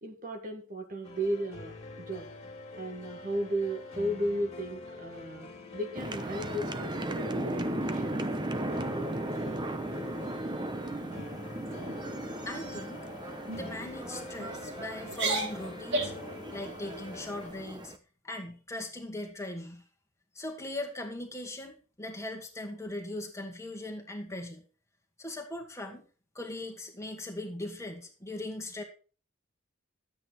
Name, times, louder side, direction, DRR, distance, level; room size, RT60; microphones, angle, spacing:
voice 1, 0.0-2.3 2.8-8.1, right 1 dB, 40° right, 5 dB, 1.8 m, -35 dB
sound 1, 1.0-17.5, left 2 dB, 30° left, 2.8 m, -46 dB
sound 2, 6.0-18.0, right 1 dB, 20° right, 0.8 m, -36 dB
sound 3, 9.3-10.0 10.4-10.6 11.0-11.3 11.7-12.0 12.6-13.0 13.5-13.7 14.4-14.7 15.1-16.3, right 2 dB, 60° right, 2.8 m, -35 dB
voice 2, 12.5-13.0 13.6-16.1 16.5-17.9 18.2-19.8 20.3-24.6 25.2-26.0 26.3-28.8, left 1 dB, 15° left, 2 dB, 2.1 m, -39 dB
13.0 x 8.5 x 4.6 m, 0.37 s
head